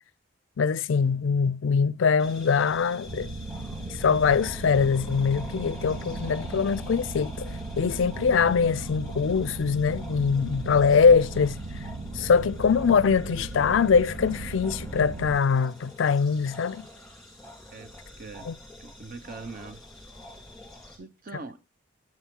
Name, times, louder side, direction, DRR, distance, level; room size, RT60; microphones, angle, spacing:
voice 1, 0.6-3.3 3.9-11.6 12.1-16.9 18.5-18.6, left 5 dB, 70° left, 0.4 m, -23 dB
sound 1, 2.2-21.0, left 1 dB, ahead, 2.2 m, -46 dB
sound 2, 3.1-15.4, right 2 dB, 85° right, 1.0 m, -37 dB
voice 2, 17.7-18.5 18.8-19.8 21.0-21.6, right 3 dB, 45° right, 0.7 m, -42 dB
7.9 x 7.1 x 3.7 m
head